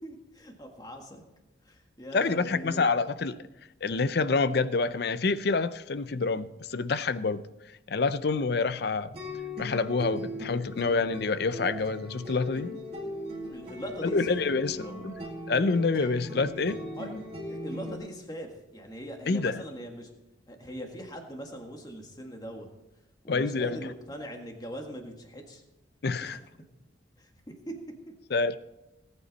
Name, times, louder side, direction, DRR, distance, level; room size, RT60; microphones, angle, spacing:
voice 1, 0.0-1.2 1.6-2.9 13.5-14.4 14.8-15.0 17.0-17.2 17.5-20.1 20.5-22.7 23.2-25.6 26.2-26.4 27.2-27.3 27.7-27.8, equal, 20° left, 1.7 m, -41 dB
voice 2, 2.1-3.4 3.8-7.4 7.9-9.1 9.6-12.7 14.1-15.1 15.5-16.8 19.3-19.6 23.3-23.8 26.0-26.4 28.3-28.6, left 4 dB, 55° left, 0.5 m, -27 dB
sound 1, 9.1-18.0, left 1 dB, 30° right, 3.1 m, -38 dB
19.0 x 8.9 x 4.0 m
head